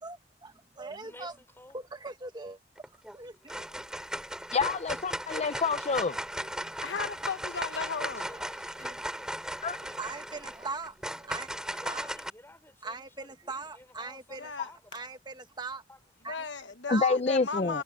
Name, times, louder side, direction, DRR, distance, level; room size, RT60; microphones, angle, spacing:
voice 1, 0.0-1.3 1.7-2.6 2.9-3.5 5.8-5.9 6.4-6.7 8.3-8.5 8.8-8.9 10.0-11.5 11.8-12.1 12.8-14.5 14.9-15.8 16.2-16.4 16.9-17.2, right 3 dB, 25° right, 1.3 m, -40 dB
voice 2, 1.0-1.8 8.2-10.6 11.7-15.2 15.9-16.1, left 1 dB, 15° left, 5.2 m, -54 dB
sound 1, 2.8-3.2 3.5-12.3, right 1 dB, 5° right, 2.8 m, -37 dB
voice 3, 4.5-6.2 9.6-9.8 16.9-17.8, left 4 dB, 35° left, 0.5 m, -27 dB
voice 4, 6.8-8.3 14.4-14.7 16.3-17.8, left 5 dB, 70° left, 1.3 m, -36 dB
head